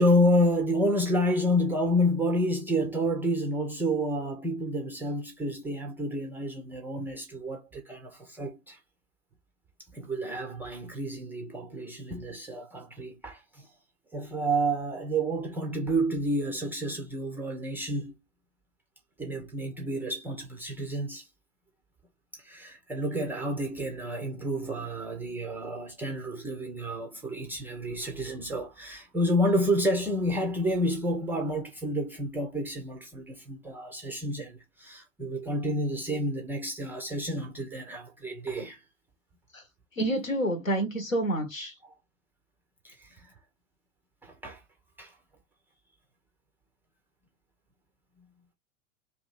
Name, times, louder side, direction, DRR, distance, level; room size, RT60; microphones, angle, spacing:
voice 1, 0.0-8.8 9.9-13.7 14.1-18.2 19.2-21.3 22.3-38.8 42.8-43.3 44.2-44.6 45.0-45.1, equal, 5° right, 0.3 m, -29 dB
voice 2, 40.0-41.7, right 1 dB, 90° left, 1.1 m, -28 dB
2.7 x 2.7 x 3.7 m
figure-of-eight pair, 90°, 39 cm